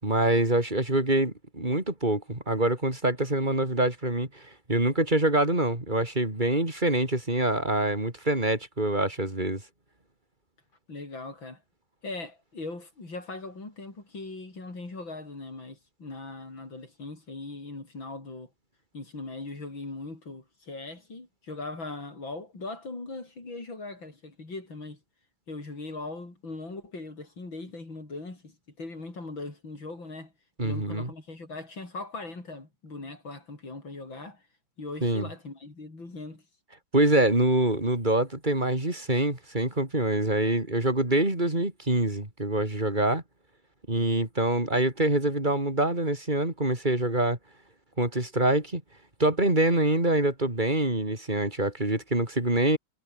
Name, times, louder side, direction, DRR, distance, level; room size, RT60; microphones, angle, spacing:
voice 1, 0.0-9.6 30.6-31.1 35.0-35.3 36.9-43.2 43.9-47.4 48.0-48.8 49.2-52.8, right 1 dB, 25° right, 4.8 m, -25 dB
voice 2, 10.9-11.6 12.0-18.5 18.9-25.0 25.5-30.3 30.6-34.4 34.8-36.4, left 3 dB, 75° left, 6.9 m, -40 dB
omnidirectional pair, 2.1 m